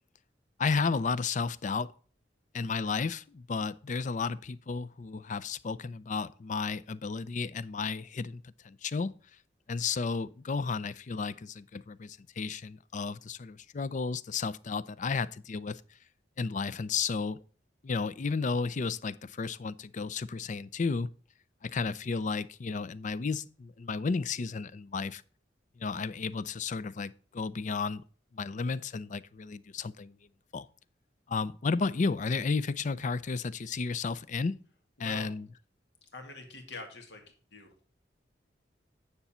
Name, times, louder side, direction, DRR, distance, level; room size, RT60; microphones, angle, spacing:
voice 1, 0.6-1.9 2.5-9.2 9.7-15.8 16.4-17.4 17.8-21.1 21.6-25.2 25.8-28.0 28.3-30.2 30.5-30.7 31.3-34.6 35.0-35.5, left 4 dB, 45° left, 0.5 m, -33 dB
voice 2, 35.0-35.3 36.0-37.2 37.5-37.7, left 3 dB, 70° left, 2.1 m, -44 dB
9.7 x 6.8 x 4.3 m
head